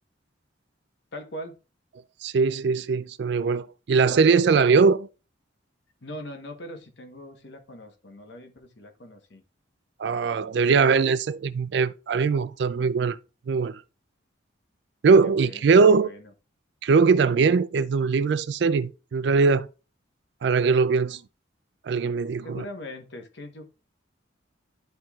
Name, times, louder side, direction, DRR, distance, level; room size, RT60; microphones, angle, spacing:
voice 1, 1.1-1.6 6.0-9.4 15.2-16.2 22.4-23.7, left 1 dB, 60° left, 1.1 m, -41 dB
voice 2, 2.2-5.1 10.0-13.2 13.5-13.8 15.0-16.1 16.8-19.7 20.4-21.2 21.9-22.6, right 5 dB, 60° right, 0.3 m, -21 dB
12.0 x 4.4 x 2.3 m
head